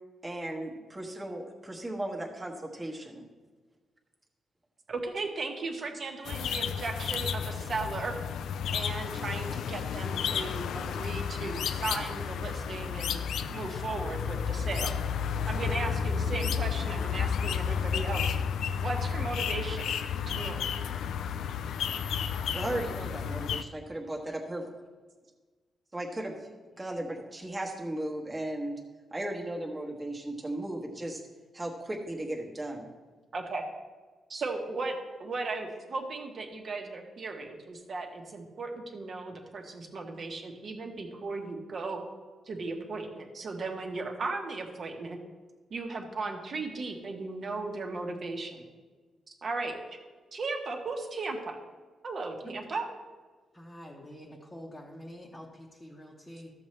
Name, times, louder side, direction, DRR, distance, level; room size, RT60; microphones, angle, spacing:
voice 1, 0.2-3.2 22.5-24.6 25.9-26.4 26.8-28.8 29.1-31.2 31.5-32.9, right 1 dB, 15° right, -1 dB, 1.3 m, -36 dB
voice 2, 4.9-8.1 8.7-13.2 13.5-14.9 15.5-18.4 18.7-19.9 20.3-20.7 33.3-33.6 34.3-34.9 35.2-42.0 42.5-45.2 45.7-48.6 49.3-50.0 50.3-51.6 52.0-52.8, right 3 dB, 45° right, 2 dB, 1.2 m, -36 dB
sound 1, 6.2-23.6, left 7 dB, 80° left, 0.4 m, -32 dB
voice 3, 53.5-56.5, equal, 10° left, -4 dB, 1.0 m, -46 dB
13.0 x 7.0 x 3.2 m, 1.4 s
cardioid pair, 140°, 0 cm